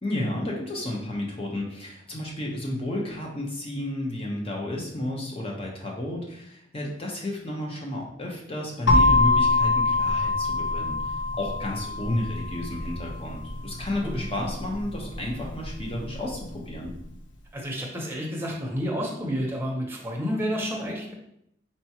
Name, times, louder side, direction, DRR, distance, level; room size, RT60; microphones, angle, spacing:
voice 1, 0.0-16.9, left 1 dB, 30° left, -1 dB, 0.9 m, -32 dB
sound 1, 8.9-16.7, left 3 dB, 80° left, 0.7 m, -25 dB
voice 2, 17.5-21.1, equal, 15° right, -2 dB, 0.8 m, -30 dB
4.7 x 2.9 x 2.9 m, 0.74 s
head